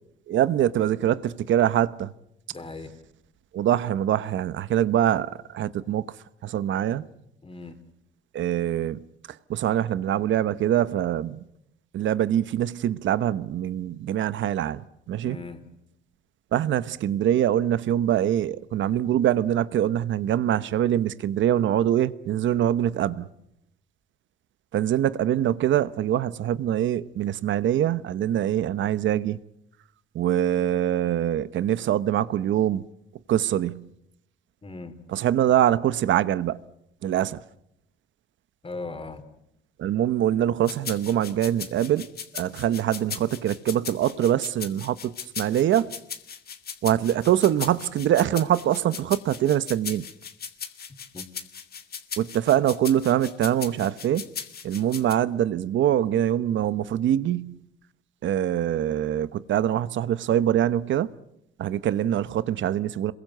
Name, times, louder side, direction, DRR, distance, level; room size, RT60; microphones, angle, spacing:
voice 1, 0.3-2.1 3.5-6.0 6.4-7.0 8.3-9.0 9.5-11.4 11.9-15.4 16.5-23.3 24.7-29.4 30.1-32.8 33.3-33.9 35.1-36.6 37.0-37.4 39.8-42.1 42.3-45.9 46.8-50.1 52.2-54.3 54.6-57.6 58.2-61.1 61.6-63.1, right 11 dB, 75° right, 1.1 m, -24 dB
voice 2, 2.5-2.9 7.4-7.8 15.2-15.6 34.6-35.0 38.6-39.2 51.1-51.2, left 3 dB, 30° left, 4.0 m, -38 dB
sound 1, 40.6-55.1, left 7 dB, 50° left, 2.4 m, -38 dB
27.5 x 22.5 x 7.9 m
cardioid pair, 90°, 20 cm